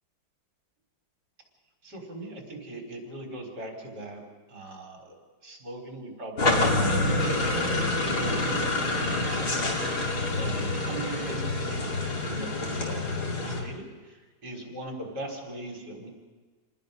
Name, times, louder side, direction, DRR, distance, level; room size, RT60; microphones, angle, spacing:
voice 1, 1.8-4.2 4.5-5.2 5.4-7.6 8.1-9.5 10.3-14.2 14.4-16.1, right 1 dB, 55° right, 0 dB, 4.8 m, -40 dB
sound 1, 6.4-13.6, left 2 dB, 55° left, 3.0 m, -27 dB
27.0 x 19.5 x 5.4 m, 1.4 s
omnidirectional pair, 2.1 m